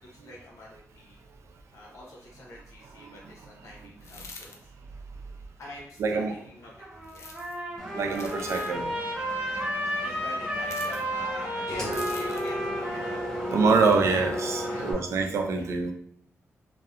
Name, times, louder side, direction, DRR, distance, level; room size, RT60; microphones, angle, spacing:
voice 1, 0.0-1.2 1.7-4.7 5.6-6.7 7.1-7.3 8.1-8.7 9.4-13.8 14.7-14.9 15.5-15.7, left 1 dB, 90° left, -3 dB, 0.9 m, -46 dB
sound 1, 4.0-4.6 7.0-7.6 8.1-8.7 10.6-11.0 11.9-12.6 13.6-14.0, left 4 dB, 65° left, 0.4 m, -45 dB
voice 2, 6.0-6.3 7.9-8.9 13.5-15.9, right 4 dB, 70° right, 4 dB, 0.4 m, -25 dB
Trumpet, 6.6-15.1, equal, 20° right, 0.8 m, -33 dB
Engine, 7.8-14.9, equal, 10° left, 0.5 m, -35 dB
2.7 x 2.1 x 2.4 m, 0.62 s
wide cardioid pair, 120°, 5 cm